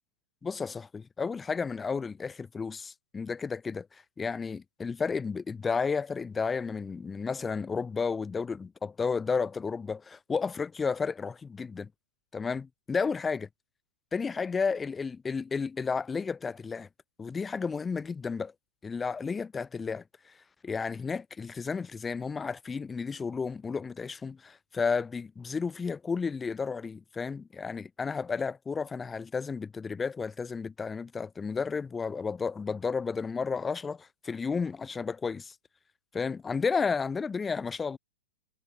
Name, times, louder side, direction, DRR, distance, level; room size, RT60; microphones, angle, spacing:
voice 1, 0.4-11.9 12.3-13.5 14.1-16.9 17.2-18.5 18.8-20.3 20.6-35.6 36.1-38.0, left 5 dB, 15° left, 5.3 m, -32 dB
hypercardioid pair, 115°, 0 cm